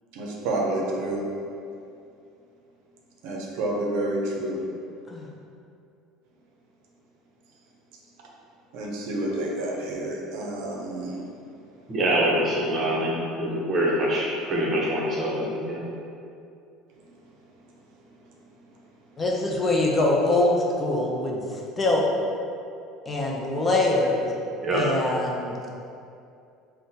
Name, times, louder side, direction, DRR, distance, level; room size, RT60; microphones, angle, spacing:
voice 1, 0.1-1.2 3.2-4.6 8.7-11.2, right 1 dB, 80° right, -2 dB, 0.5 m, -29 dB
voice 2, 11.9-15.9 24.6-24.8, right 1 dB, 30° right, -4 dB, 0.7 m, -25 dB
voice 3, 19.2-22.0 23.1-24.3 24.7-25.5, left 2 dB, 25° left, -2 dB, 0.4 m, -24 dB
3.6 x 2.1 x 2.7 m, 2.5 s
supercardioid pair, 120°, 0 cm